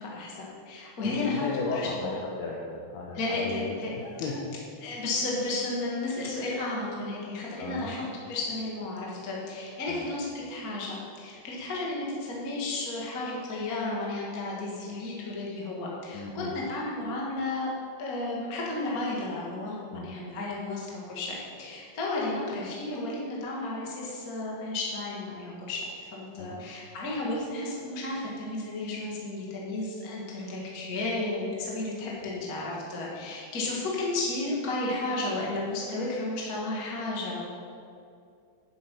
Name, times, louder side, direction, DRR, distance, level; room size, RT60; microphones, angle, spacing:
voice 1, 0.0-1.4 1.7-2.1 3.1-3.9 4.8-8.0 8.3-17.7 18.0-37.4, left 2 dB, 50° left, -4 dB, 1.0 m, -33 dB
voice 2, 1.0-4.4 7.6-8.0 9.9-10.1 16.1-16.5 19.9-20.1 26.4-26.6, left 3 dB, 80° left, -2 dB, 2.3 m, -35 dB
10.5 x 8.0 x 5.8 m, 2.4 s
omnidirectional pair, 5.7 m